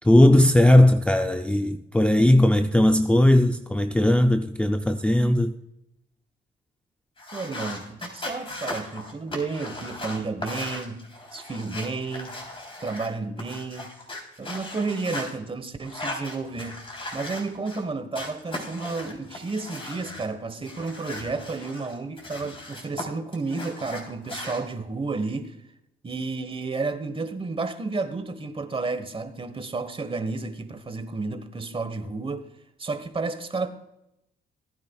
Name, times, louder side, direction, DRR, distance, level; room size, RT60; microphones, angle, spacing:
voice 1, 0.0-5.6, left 1 dB, 5° left, 0.5 m, -18 dB
sound 1, 7.2-13.1 13.4-15.3 15.8-17.8 18.1-20.3 20.6-23.0 23.3-24.6, left 1 dB, 25° left, 3.6 m, -37 dB
voice 2, 7.3-11.0 11.3-12.4 12.8-13.9 14.4-16.8 17.1-25.5 26.0-32.5 32.8-33.7, right 3 dB, 25° right, 1.3 m, -31 dB
18.0 x 9.6 x 2.4 m
cardioid pair, 90°, 20 cm